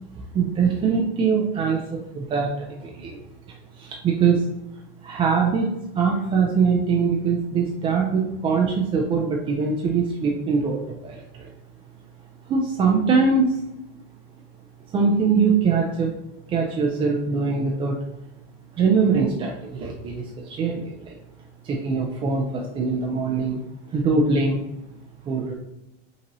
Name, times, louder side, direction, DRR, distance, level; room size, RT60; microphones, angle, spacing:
voice 1, 0.3-3.2 3.8-4.4 5.0-11.5 12.5-13.6 14.9-16.1 16.5-18.0 18.8-21.1 21.6-23.6 23.9-24.6 25.2-25.5, right 5 dB, 20° right, 0 dB, 0.3 m, -22 dB
5.2 x 2.7 x 2.9 m, 0.89 s
supercardioid pair, 145°, 29 cm